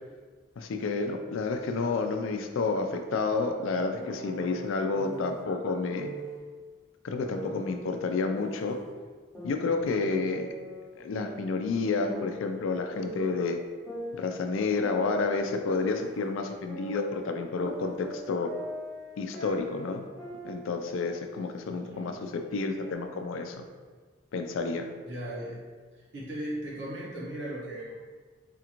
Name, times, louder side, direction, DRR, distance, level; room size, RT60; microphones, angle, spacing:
voice 1, 0.6-6.1 7.0-8.8 9.4-10.5 11.0-13.6 14.1-18.5 19.2-20.1 20.4-23.6 24.3-24.9, left 4 dB, 85° left, 6 dB, 0.4 m, -30 dB
sound 1, 4.0-5.4 5.9-6.4 7.3-8.9 9.3-10.9 11.2-13.4 13.8-16.3 16.7-20.8 21.1-21.4 21.9-22.9, right 1 dB, ahead, 0.6 m, -42 dB
voice 2, 21.7-22.2 25.0-25.6 25.9-27.9, right 1 dB, 65° right, -5 dB, 1.0 m, -37 dB
4.2 x 2.4 x 2.9 m, 1.5 s
head